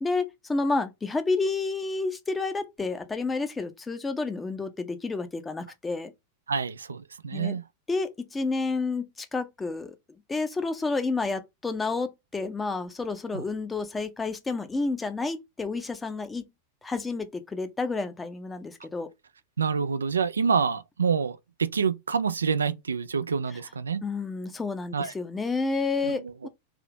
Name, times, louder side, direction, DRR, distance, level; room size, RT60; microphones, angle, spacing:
voice 1, 0.0-6.1 7.3-7.6 7.9-9.9 10.3-16.5 16.8-19.1 24.0-26.5, left 3 dB, 15° left, 0.6 m, -30 dB
voice 2, 6.5-7.6 13.3-13.4 19.6-24.0 24.9-25.1 26.0-26.5, right 6 dB, 75° right, 0.3 m, -27 dB
3.4 x 2.7 x 3.5 m
figure-of-eight pair, 90°, 0 cm